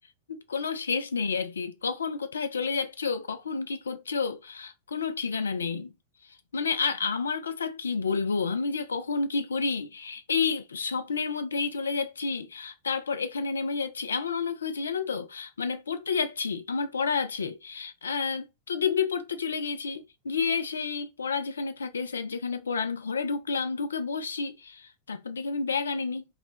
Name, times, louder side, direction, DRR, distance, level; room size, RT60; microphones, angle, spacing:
voice 1, 0.3-5.9 6.5-26.3, left 5 dB, 70° left, 0.3 m, -30 dB
2.3 x 2.0 x 2.6 m
figure-of-eight pair, 90°, 0 cm